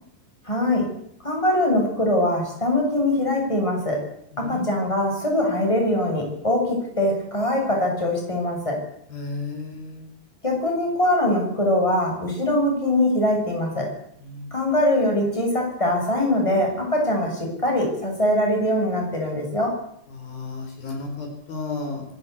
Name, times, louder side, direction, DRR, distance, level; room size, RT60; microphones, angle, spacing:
voice 1, 0.4-0.8 1.2-4.0 4.4-8.8 10.4-13.9 14.5-19.7, left 1 dB, 5° left, 1 dB, 7.4 m, -22 dB
voice 2, 4.3-4.7 9.1-10.1 14.2-14.5 20.1-22.1, left 3 dB, 65° left, 4 dB, 5.6 m, -33 dB
25.5 x 15.5 x 8.5 m, 0.72 s
omnidirectional pair, 4.6 m